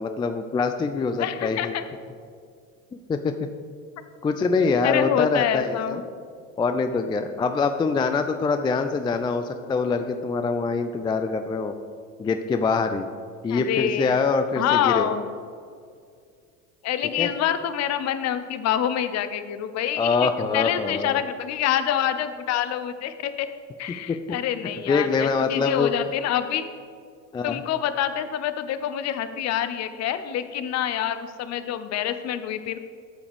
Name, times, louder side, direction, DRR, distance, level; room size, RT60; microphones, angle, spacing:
voice 1, 0.0-1.8 3.1-3.5 4.2-6.0 6.6-11.8 12.2-13.1 13.4-15.1 17.2-17.3 20.0-21.2 24.1-24.2 24.9-25.9 27.3-27.6, left 4 dB, 10° left, 8 dB, 0.4 m, -24 dB
voice 2, 1.2-1.8 4.8-6.0 13.5-14.2 14.6-15.3 16.8-23.5 23.8-26.6 27.4-32.8, left 10 dB, 40° left, 11 dB, 0.7 m, -26 dB
13.0 x 7.0 x 3.5 m, 2.2 s
hypercardioid pair, 70°, 41 cm